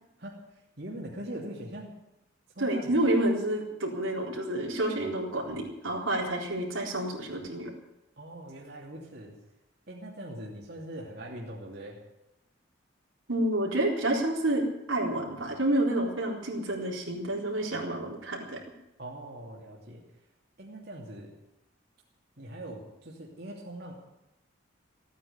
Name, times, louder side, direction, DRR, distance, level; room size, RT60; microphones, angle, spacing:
voice 1, 0.8-1.9 2.5-2.9 8.2-9.4 9.9-12.0 19.0-20.0 20.6-21.3 22.4-23.9, right 1 dB, 55° right, -3 dB, 2.8 m, -41 dB
voice 2, 2.6-7.7 13.3-18.6, right 1 dB, 85° right, -1 dB, 4.0 m, -29 dB
16.0 x 9.4 x 9.6 m, 0.90 s
head